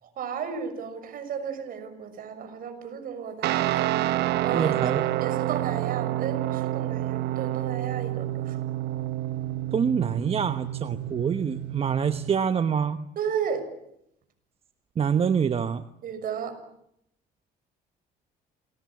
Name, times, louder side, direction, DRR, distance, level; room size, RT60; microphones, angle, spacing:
voice 1, 0.0-3.9 4.4-8.6 13.1-13.6 16.0-16.6, right 7 dB, 60° right, 8 dB, 6.5 m, -34 dB
Guitar, 3.4-12.3, right 15 dB, 80° right, 1.1 m, -28 dB
voice 2, 4.5-5.0 9.7-13.0 15.0-15.8, right 7 dB, 35° right, 10 dB, 1.1 m, -26 dB
28.0 x 21.5 x 8.6 m, 0.76 s
cardioid pair, 110°, 17 cm